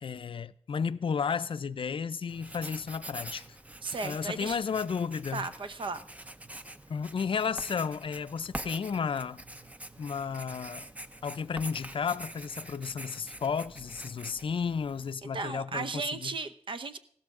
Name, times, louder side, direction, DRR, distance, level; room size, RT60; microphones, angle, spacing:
voice 1, 0.0-3.5 4.0-5.5 6.9-9.4 10.0-10.8 11.2-16.3, left 6 dB, 60° left, 0.5 m, -33 dB
Writing, 2.3-15.1, right 1 dB, 15° right, 0.6 m, -45 dB
voice 2, 3.8-4.6 5.3-6.1 15.2-17.0, right 4 dB, 55° right, 0.7 m, -35 dB
16.0 x 13.0 x 3.6 m
wide cardioid pair, 100°, 10 cm